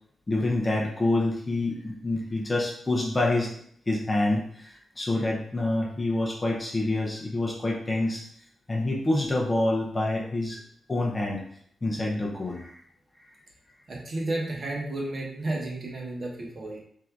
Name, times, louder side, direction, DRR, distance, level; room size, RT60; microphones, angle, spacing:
voice 1, 0.3-3.5 3.9-8.2 8.7-10.6 10.9-11.4 11.8-12.8, left 2 dB, 20° left, -2 dB, 0.6 m, -27 dB
voice 2, 13.9-16.8, right 2 dB, 35° right, -2 dB, 1.0 m, -32 dB
3.7 x 2.6 x 4.4 m, 0.66 s
wide cardioid pair, 160°, 0 cm